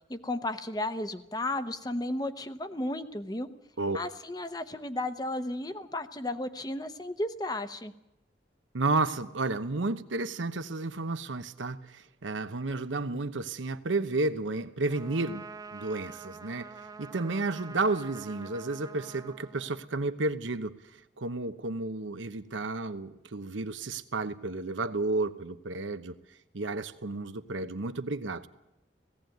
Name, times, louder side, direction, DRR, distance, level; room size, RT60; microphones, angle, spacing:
voice 1, 0.1-3.5 3.9-7.9, left 1 dB, 20° left, 10 dB, 0.8 m, -34 dB
voice 2, 8.7-15.4 15.7-26.2 26.5-28.5, right 3 dB, 85° right, 11 dB, 0.9 m, -32 dB
Trumpet, 14.9-20.2, right 5 dB, 20° right, 0.8 m, -46 dB
17.5 x 16.0 x 9.3 m, 0.88 s
head